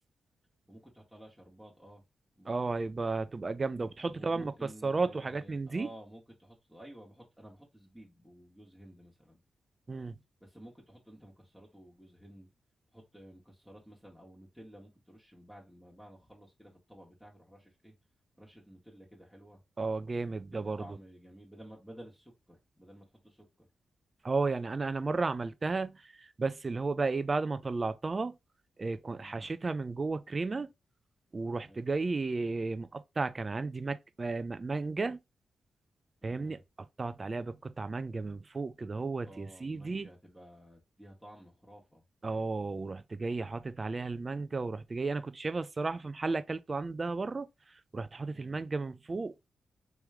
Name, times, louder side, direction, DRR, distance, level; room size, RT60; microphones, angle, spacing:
voice 1, 0.7-2.0 2.4-2.6 4.0-9.4 10.4-12.5 12.9-17.9 18.4-19.6 20.5-23.7 29.1-29.5 31.7-31.9 36.2-36.6 39.2-42.0 48.3-48.6, right 1 dB, 5° left, 1.6 m, -53 dB
voice 2, 2.5-4.5 4.8-5.9 9.9-10.2 19.8-20.8 24.2-28.3 28.8-30.7 31.3-35.2 36.2-36.6 37.0-40.1 42.2-47.5 47.9-49.5, right 3 dB, 40° right, 0.5 m, -33 dB
3.1 x 3.1 x 3.5 m
supercardioid pair, 50°, 0 cm